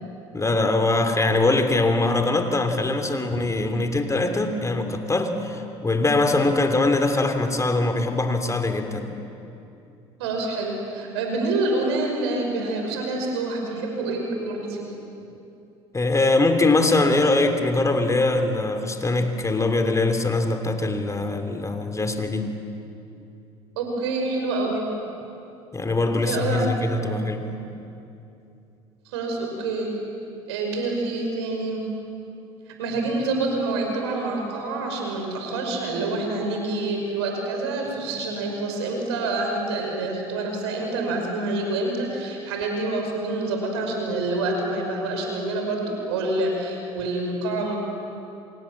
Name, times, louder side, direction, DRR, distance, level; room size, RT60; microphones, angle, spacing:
voice 1, 0.3-9.1 15.9-22.5 25.7-27.6, left 2 dB, 25° left, 6 dB, 3.1 m, -22 dB
voice 2, 10.2-14.9 23.8-24.9 26.2-27.2 29.1-29.9 30.5-31.8 32.7-47.8, right 2 dB, 85° right, 2 dB, 5.6 m, -27 dB
27.0 x 26.5 x 7.4 m, 2.8 s
hypercardioid pair, 65°, 14 cm